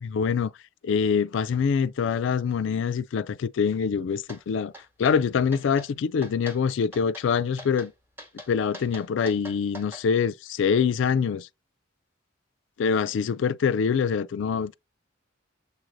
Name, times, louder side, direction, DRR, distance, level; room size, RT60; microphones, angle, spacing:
voice 1, 0.0-0.5 0.8-4.7 5.0-7.9 8.5-11.5 12.8-14.7, left 6 dB, 70° left, 0.3 m, -25 dB
sound 1, 4.3-4.4 4.7-5.2 5.5-5.9 6.2-6.6 6.9-7.3 7.6-7.9 8.2-10.0, equal, 10° right, 0.9 m, -43 dB
6.8 x 2.6 x 3.1 m
head